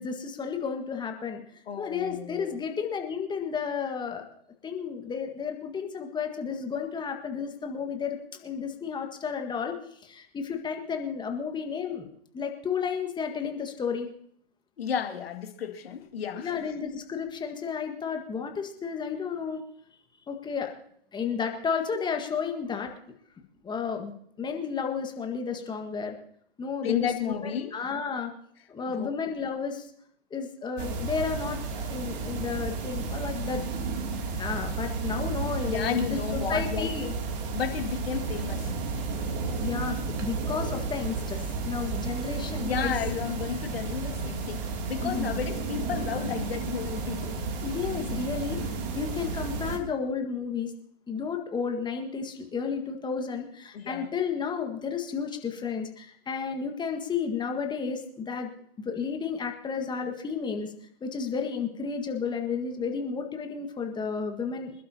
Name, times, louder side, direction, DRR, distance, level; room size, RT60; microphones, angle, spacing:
voice 1, 0.0-1.4 1.8-4.3 4.6-9.7 10.0-12.1 12.3-14.1 16.4-19.6 20.3-20.7 21.1-22.9 23.6-26.2 26.6-28.3 28.7-29.9 30.3-33.6 34.4-37.1 39.6-43.0 45.0-45.3 47.6-48.6 48.9-50.7 51.1-58.5 58.8-60.7 61.0-64.7, left 6 dB, 15° left, 4 dB, 1.7 m, -32 dB
voice 2, 1.7-2.6 14.8-16.5 26.8-27.7 28.9-29.1 35.7-36.9 37.5-38.7 42.6-47.4 53.7-54.1, left 8 dB, 65° left, 5 dB, 2.3 m, -32 dB
sound 1, 30.8-49.8, right 4 dB, 40° right, 2.8 m, -32 dB
26.5 x 12.0 x 2.9 m, 0.65 s
hypercardioid pair, 115°, 32 cm